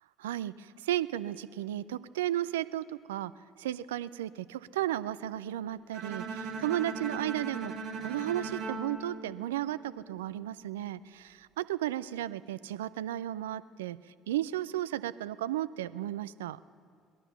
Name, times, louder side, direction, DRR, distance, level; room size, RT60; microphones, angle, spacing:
voice 1, 0.2-3.3 3.6-7.7 8.0-14.0 14.3-16.6, right 13 dB, 80° right, 16 dB, 0.3 m, -34 dB
Bowed string instrument, 5.9-10.1, right 3 dB, 55° right, 1.6 m, -39 dB
19.5 x 11.0 x 5.7 m, 2.1 s
figure-of-eight pair, 55°, 0 cm